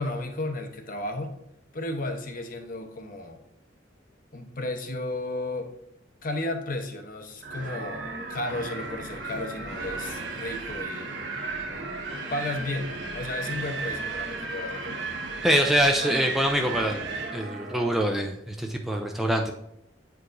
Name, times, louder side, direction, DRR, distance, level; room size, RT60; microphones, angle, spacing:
voice 1, 0.0-1.3 1.7-3.4 4.3-5.7 6.2-11.1 12.3-15.1, left 2 dB, 50° left, 5 dB, 0.8 m, -33 dB
Brass instrument, 7.4-18.2, right 2 dB, 45° right, 0.9 m, -42 dB
Wind, 7.4-17.4, right 3 dB, 70° right, 1.0 m, -35 dB
voice 2, 15.4-17.0 17.3-19.5, equal, ahead, 2 dB, 0.4 m, -24 dB
8.1 x 4.6 x 2.6 m, 0.78 s
head